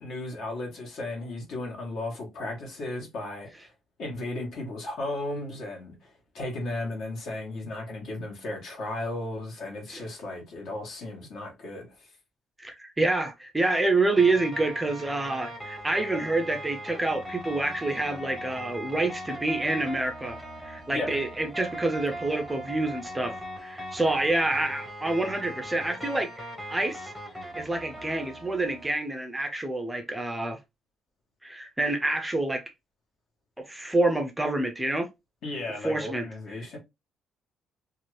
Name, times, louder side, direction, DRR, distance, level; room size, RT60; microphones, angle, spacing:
voice 1, 0.0-3.7 4.0-12.1 20.9-21.2 35.4-36.8, left 2 dB, 65° left, 1.2 m, -35 dB
voice 2, 12.6-20.4 20.6-26.4 26.7-27.1 27.6-30.6 31.4-32.6 33.6-35.1 35.8-36.3, right 2 dB, 10° right, 0.4 m, -27 dB
sound 1, 14.2-28.9, equal, 10° left, 0.9 m, -39 dB
2.7 x 2.4 x 3.0 m
cardioid pair, 150°, 0 cm